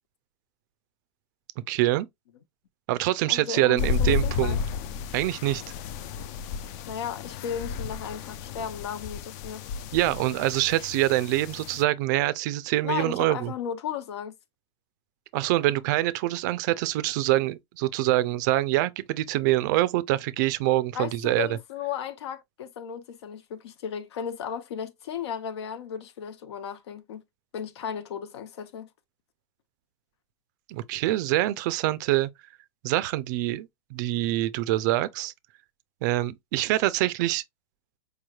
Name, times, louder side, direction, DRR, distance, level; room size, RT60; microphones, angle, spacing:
voice 1, 1.7-2.1 2.9-4.6 5.1-5.6 9.9-13.5 15.3-21.5 30.7-32.3 32.8-35.3 36.0-37.4, right 16 dB, 45° right, 0.4 m, -25 dB
voice 2, 3.3-4.6 6.9-9.6 12.8-14.3 20.9-27.2 27.5-28.9, left 8 dB, 85° left, 0.7 m, -35 dB
sound 1, 3.8-11.8, left 6 dB, 40° left, 0.4 m, -32 dB
4.8 x 3.1 x 2.3 m
supercardioid pair, 165°, 14 cm